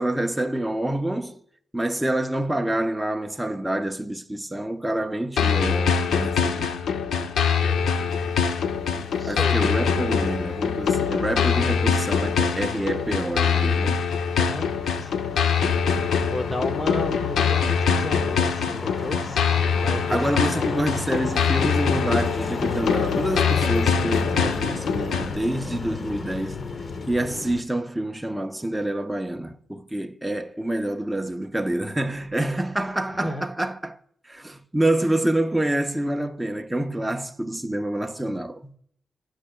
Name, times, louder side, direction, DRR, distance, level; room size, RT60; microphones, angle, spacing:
voice 1, 0.0-1.4 1.7-6.7 9.3-14.0 20.1-26.6 27.1-34.0 34.3-38.6, right 1 dB, 5° right, 0.6 m, -27 dB
sound 1, 5.4-25.4, left 6 dB, 90° left, 0.7 m, -23 dB
voice 2, 7.7-8.5 8.9-9.7 14.4-14.7 15.0-15.2 16.3-19.4 19.8-20.3 20.5-20.8 33.2-33.4, left 1 dB, 20° left, 1.1 m, -33 dB
sound 2, 7.9-27.6, left 4 dB, 45° left, 0.8 m, -36 dB
17.0 x 6.4 x 2.2 m
cardioid pair, 90°, 0 cm